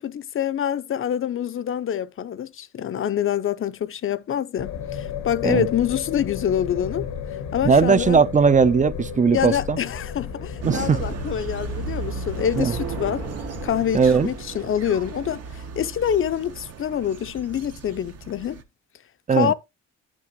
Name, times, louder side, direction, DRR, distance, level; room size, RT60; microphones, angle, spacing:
voice 1, 0.0-7.1 7.5-8.2 9.3-13.3 13.6-18.6 19.3-19.5, left 9 dB, 45° left, 0.6 m, -26 dB
sound 1, 4.6-14.3, left 7 dB, 85° left, 1.4 m, -34 dB
voice 2, 7.6-9.8 10.6-11.0 12.5-12.7 13.9-14.3 19.3-19.5, right 5 dB, 25° right, 0.5 m, -18 dB
sound 2, 9.2-16.5, right 5 dB, 85° right, 1.7 m, -39 dB
sound 3, 10.6-18.6, right 5 dB, 55° right, 1.1 m, -36 dB
11.0 x 6.1 x 2.9 m
cardioid pair, 90°, 30 cm